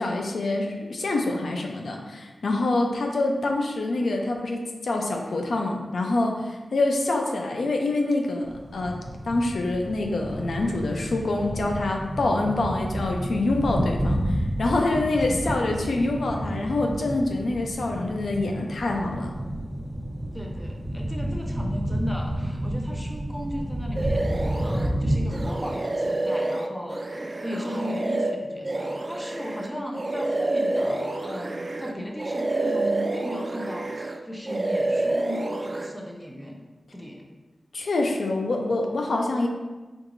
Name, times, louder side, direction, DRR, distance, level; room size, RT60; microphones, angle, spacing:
voice 1, 0.0-9.0 9.3-19.3 37.7-39.5, left 2 dB, 90° left, 2 dB, 0.5 m, -26 dB
sound 1, 8.4-25.5, right 1 dB, 20° right, 1.0 m, -30 dB
voice 2, 14.8-15.7 20.3-36.6 36.9-37.2, equal, 5° left, 0 dB, 0.7 m, -36 dB
sound 2, 24.0-24.9 25.3-31.9 32.2-34.2 34.5-35.9, right 2 dB, 35° right, 0.3 m, -28 dB
4.5 x 3.9 x 2.6 m, 1.2 s
wide cardioid pair, 75°, 0 cm